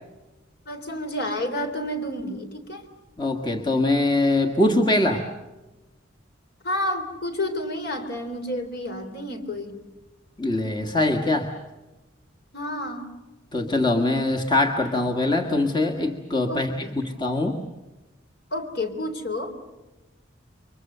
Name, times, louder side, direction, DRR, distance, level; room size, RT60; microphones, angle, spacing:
voice 1, 0.7-2.9 6.6-9.8 12.5-13.1 16.5-17.0 18.5-19.5, left 1 dB, 55° left, 5 dB, 3.7 m, -30 dB
voice 2, 3.2-5.3 10.4-11.5 13.5-17.6, left 2 dB, 25° left, 3 dB, 1.6 m, -23 dB
29.0 x 24.5 x 6.8 m, 1.1 s
head